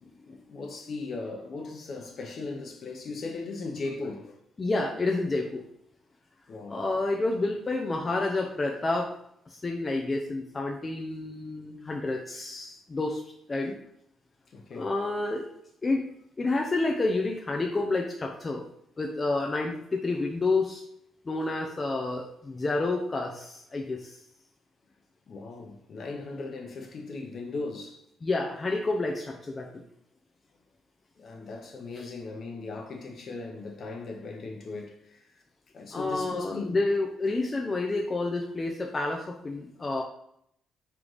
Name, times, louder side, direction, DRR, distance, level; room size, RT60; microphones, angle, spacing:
voice 1, 0.0-4.4 6.5-6.8 14.5-14.9 25.3-28.0 31.2-35.3 35.7-36.8, left 3 dB, 55° left, 0.9 m, -38 dB
voice 2, 4.6-5.7 6.7-9.1 9.5-13.2 13.5-13.8 14.7-15.5 15.8-16.1 16.4-18.7 19.0-20.8 21.3-24.2 28.2-29.8 35.9-40.0, left 2 dB, 30° left, 0.5 m, -29 dB
3.3 x 3.2 x 3.9 m
cardioid pair, 90°, 0 cm